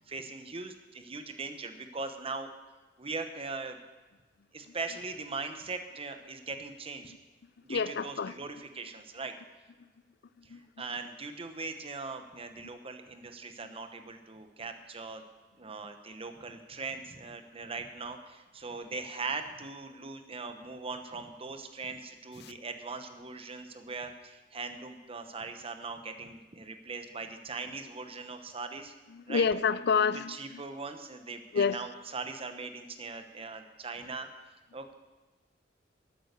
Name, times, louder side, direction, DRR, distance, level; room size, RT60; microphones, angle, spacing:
voice 1, 0.0-2.5 3.0-3.8 4.5-7.1 7.6-9.3 10.4-15.2 15.6-28.9 29.3-29.5 30.3-34.3 34.7-34.9, right 4 dB, 30° right, 7 dB, 1.0 m, -40 dB
voice 2, 7.7-8.3 10.5-10.7 22.4-22.5 29.1-30.6 31.5-31.8, left 6 dB, 60° left, 16 dB, 0.5 m, -28 dB
13.0 x 8.7 x 6.8 m, 1.2 s
head